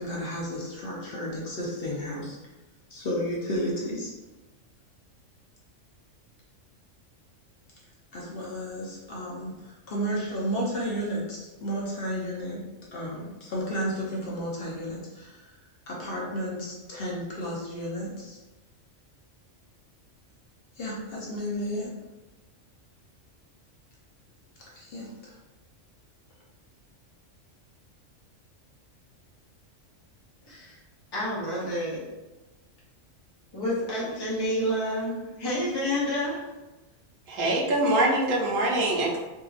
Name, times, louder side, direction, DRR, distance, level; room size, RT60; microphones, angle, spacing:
voice 1, 0.0-2.4 2.9-4.1 8.1-12.7 12.9-15.5 15.9-18.4 20.8-21.9 24.7-25.3, equal, 55° left, -5 dB, 0.8 m, -32 dB
voice 2, 30.5-30.8 31.1-32.1 33.5-36.5, equal, 25° left, -7 dB, 0.7 m, -29 dB
voice 3, 37.3-39.2, right 1 dB, 80° right, -1 dB, 1.0 m, -24 dB
2.7 x 2.6 x 2.4 m, 1.1 s
omnidirectional pair, 1.3 m